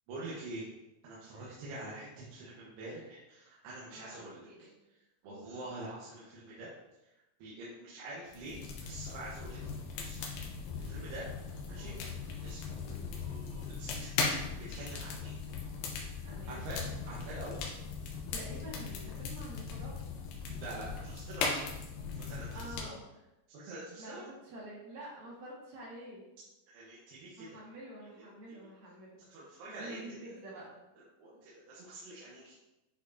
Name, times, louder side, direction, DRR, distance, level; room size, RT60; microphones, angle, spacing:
voice 1, 0.1-0.7 1.0-4.7 5.2-6.7 7.4-9.7 10.0-10.2 10.8-11.3 11.7-12.1 12.4-15.4 16.5-17.7 20.5-21.5 22.2-22.9 23.5-24.2 26.7-27.6 28.5-28.6 29.3-30.3 31.2-32.6, right 2 dB, 85° right, -6 dB, 3.2 m, -46 dB
voice 2, 3.9-4.7 5.2-5.8 10.8-11.0 11.7-12.0 12.8-13.2 16.2-16.6 18.3-20.0 22.2-23.0 23.9-26.2 27.4-29.2 29.7-30.8, right 1 dB, 55° right, -5 dB, 2.6 m, -48 dB
sound 1, 8.3-22.8, left 5 dB, 80° left, 2.9 m, -39 dB
10.5 x 4.3 x 2.7 m, 0.97 s
omnidirectional pair, 4.6 m